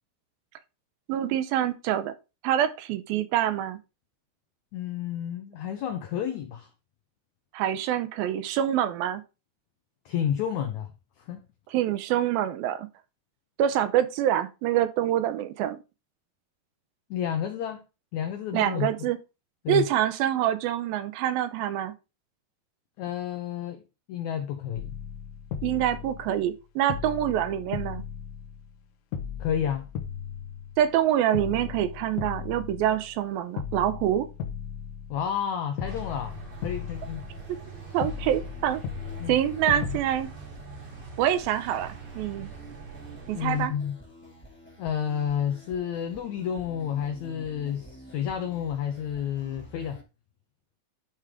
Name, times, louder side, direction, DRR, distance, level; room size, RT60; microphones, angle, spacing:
voice 1, 1.1-2.1 2.4-3.8 7.5-9.2 11.7-12.9 13.6-15.8 18.5-19.2 19.7-21.9 25.6-28.0 30.8-34.3 37.9-38.8 39.3-40.3 41.2-42.5 43.3-43.7, right 11 dB, 80° right, 2.4 m, -26 dB
voice 2, 4.7-6.7 10.0-10.9 11.2-11.4 17.1-17.8 18.1-19.1 19.6-19.9 23.0-24.9 29.4-29.8 35.1-36.4 36.6-37.2 39.2-39.4 43.3-44.0 44.8-50.0, left 9 dB, 85° left, 1.6 m, -30 dB
sound 1, 24.7-26.6 26.9-28.8 29.1-31.0 31.3-33.3 33.6-35.5 35.8-37.7 38.0-40.0, left 7 dB, 70° left, 1.8 m, -37 dB
sound 2, 35.8-43.7, right 5 dB, 45° right, 1.4 m, -44 dB
sound 3, 36.3-50.0, equal, 5° left, 1.2 m, -49 dB
11.5 x 4.8 x 3.6 m
omnidirectional pair, 4.3 m